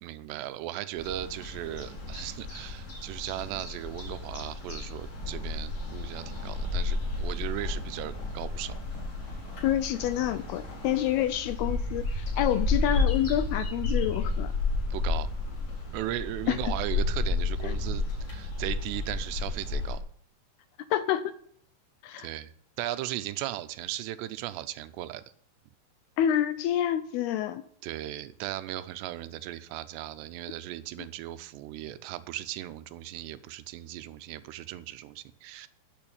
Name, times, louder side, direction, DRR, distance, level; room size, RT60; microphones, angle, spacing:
voice 1, 0.0-8.7 14.9-15.3 15.9-20.0 22.2-22.5 22.8-25.2 27.8-35.7, right 14 dB, 85° right, 13 dB, 2.8 m, -37 dB
sound 1, 1.0-20.0, left 3 dB, 40° left, 5.4 m, -32 dB
voice 2, 9.6-14.5 16.5-16.6 17.6-17.8 20.9-21.3 22.0-22.3 26.2-27.6, left 11 dB, 80° left, 13 dB, 2.4 m, -28 dB
10.5 x 6.7 x 8.7 m, 0.63 s
omnidirectional pair, 5.0 m